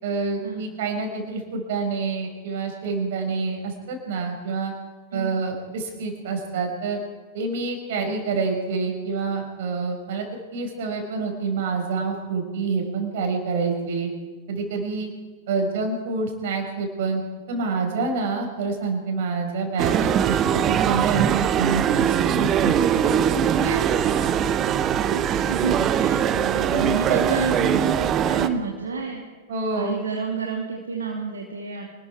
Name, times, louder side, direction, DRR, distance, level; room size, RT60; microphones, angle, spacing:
voice 1, 0.0-4.7 5.1-7.0 7.3-10.3 10.5-14.1 14.5-15.1 15.5-17.2 17.5-21.3 21.6-22.7 23.6-23.8 29.5-30.0, right 4 dB, 55° right, 3 dB, 5.7 m, -27 dB
voice 2, 5.1-5.4 7.9-8.2 24.1-29.2 29.7-31.8, right 4 dB, 70° right, 1 dB, 2.6 m, -30 dB
sound 1, 19.8-28.5, right 9 dB, 30° right, 1.2 m, -21 dB
27.5 x 20.0 x 4.8 m, 1.3 s
figure-of-eight pair, 90°, 0 cm